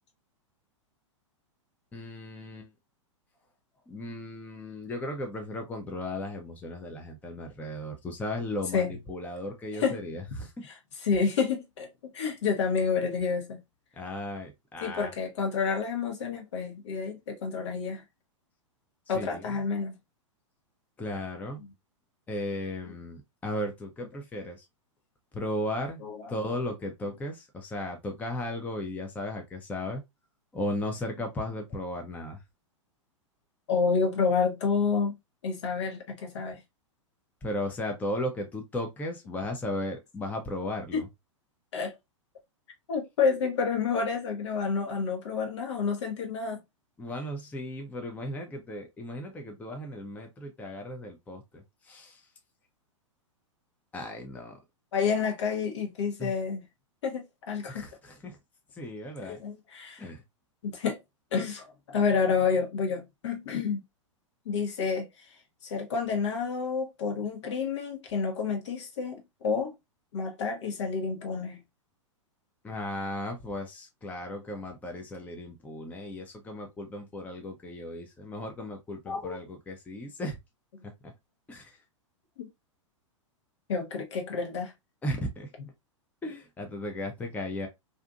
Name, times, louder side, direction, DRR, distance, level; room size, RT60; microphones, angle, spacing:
voice 1, 1.9-2.7 3.9-10.6 14.0-15.1 19.1-19.5 21.0-21.6 22.3-24.6 25.3-30.0 30.5-32.4 37.4-41.1 47.0-52.2 53.9-54.6 56.2-56.3 57.7-58.4 58.7-59.4 60.0-60.2 72.6-80.4 80.8-81.1 81.5-81.8 85.0-85.5 86.2-87.7, left 1 dB, 10° left, 0.6 m, -36 dB
voice 2, 11.0-11.9 12.1-13.6 14.8-18.0 19.1-20.0 26.0-26.2 33.7-35.1 35.4-36.6 40.9-41.0 41.7-41.9 42.9-46.6 54.9-56.6 57.0-57.8 59.2-60.0 60.6-61.0 61.3-63.8 64.4-65.1 65.6-69.7 70.1-71.6 79.1-79.4 82.4-82.5 83.7-84.7, left 5 dB, 60° left, 1.0 m, -29 dB
2.6 x 2.5 x 2.3 m
figure-of-eight pair, 105°, 17 cm